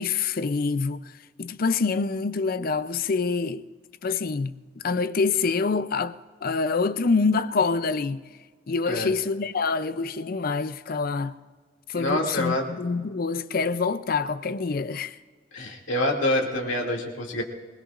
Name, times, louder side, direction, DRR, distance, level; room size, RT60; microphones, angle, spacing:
voice 1, 0.0-3.7 4.0-8.2 8.7-11.3 11.9-15.2, left 4 dB, 45° left, 0.5 m, -26 dB
voice 2, 11.9-12.7 15.5-17.4, left 1 dB, 70° left, 2.5 m, -26 dB
26.0 x 19.5 x 2.5 m
head